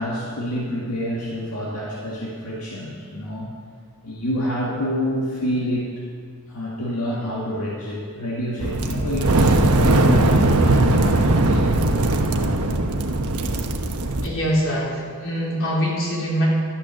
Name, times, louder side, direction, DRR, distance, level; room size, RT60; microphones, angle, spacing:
voice 1, 0.0-3.5 4.0-5.9 6.5-11.6, equal, 85° left, -5 dB, 1.8 m, -27 dB
sound 1, 8.6-14.3, right 2 dB, 85° right, 1.1 m, -19 dB
voice 2, 14.2-16.5, equal, 60° left, -5 dB, 3.7 m, -23 dB
12.0 x 9.1 x 7.0 m, 2.1 s
head